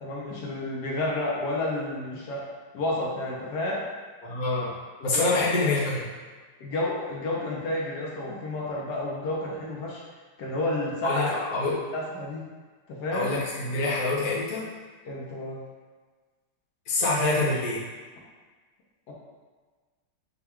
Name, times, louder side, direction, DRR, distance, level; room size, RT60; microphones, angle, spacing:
voice 1, 0.0-2.4 2.7-3.8 5.0-5.7 6.6-10.0 10.4-11.3 11.6-12.4 12.9-13.3 15.0-15.6 19.1-19.2, left 1 dB, 60° left, -4 dB, 1.1 m, -31 dB
voice 2, 4.2-4.7 5.0-6.1 11.0-11.7 13.1-14.6 16.9-17.8, left 2 dB, 80° left, -6 dB, 0.4 m, -26 dB
5.6 x 2.4 x 3.5 m, 1.4 s
omnidirectional pair, 2.4 m